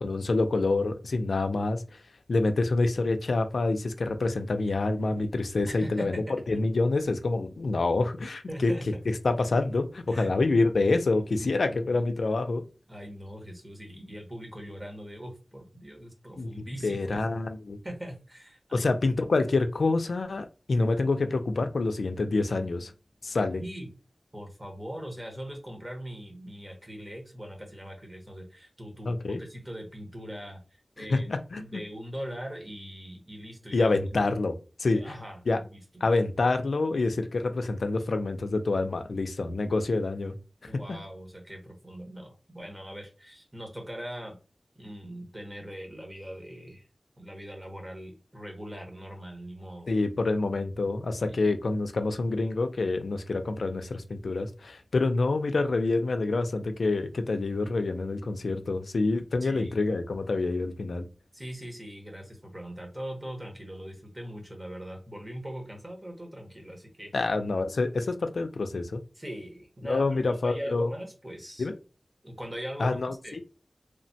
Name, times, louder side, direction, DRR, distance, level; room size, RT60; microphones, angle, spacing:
voice 1, 0.0-2.0 2.3-8.7 9.2-12.6 16.4-16.5 16.8-17.8 18.7-22.9 23.2-23.6 29.1-29.4 31.0-31.8 33.7-35.1 35.5-35.6 36.0-40.4 40.6-41.0 49.9-61.1 67.1-69.0 69.8-70.9 71.6-71.7 72.8-73.4, left 3 dB, 90° left, 0.3 m, -27 dB
voice 2, 5.7-6.6 8.5-8.9 10.1-10.6 11.3-12.1 12.9-17.4 17.8-18.9 23.6-23.9 24.3-31.3 31.5-34.2 34.9-36.1 40.7-44.4 44.8-46.8 47.2-49.9 51.3-51.4 59.4-59.8 61.3-67.1 69.1-71.7 72.2-73.4, equal, 20° right, 1.0 m, -41 dB
3.1 x 2.1 x 2.6 m
wide cardioid pair, 85°, 0 cm